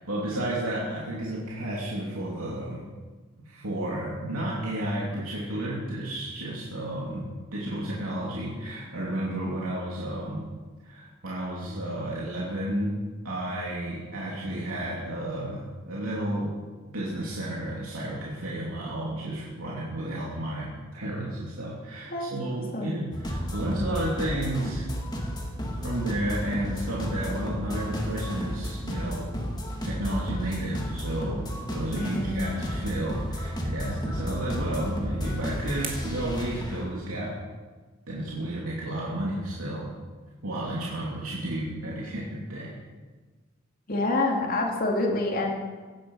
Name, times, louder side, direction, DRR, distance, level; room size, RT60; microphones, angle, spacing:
voice 1, 0.0-2.8 3.4-10.5 10.8-13.0 13.2-16.5 16.9-24.9 25.8-29.3 29.8-37.4 38.1-39.9 40.4-42.7, right 1 dB, 85° right, -5 dB, 3.0 m, -32 dB
sound 1, 23.1-36.9, equal, 20° left, 2.0 m, -33 dB
voice 2, 31.9-32.4 43.9-45.5, left 2 dB, 45° left, 0 dB, 2.6 m, -27 dB
sound 2, 34.8-37.4, right 6 dB, 40° right, 2.8 m, -44 dB
16.0 x 11.5 x 5.6 m, 1.4 s
head